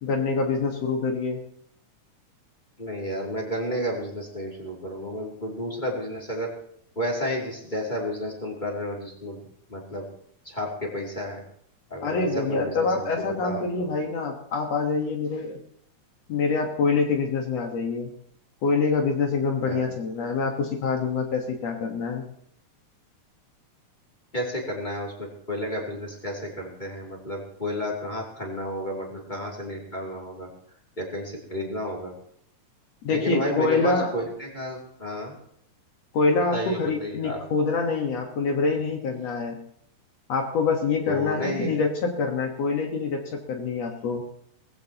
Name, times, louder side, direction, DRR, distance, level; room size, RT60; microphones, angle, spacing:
voice 1, 0.0-1.4 12.0-15.6 16.3-18.1 18.6-22.2 33.0-34.1 36.1-39.6 40.3-44.2, left 4 dB, 60° left, 2 dB, 2.4 m, -25 dB
voice 2, 2.8-6.5 6.9-9.4 9.7-10.1 10.4-11.4 11.9-13.9 19.7-19.8 24.3-30.5 31.0-32.1 33.1-35.3 36.5-37.4 41.1-41.7, equal, 15° left, -2 dB, 2.6 m, -31 dB
20.0 x 15.0 x 2.9 m, 0.67 s
omnidirectional pair, 3.5 m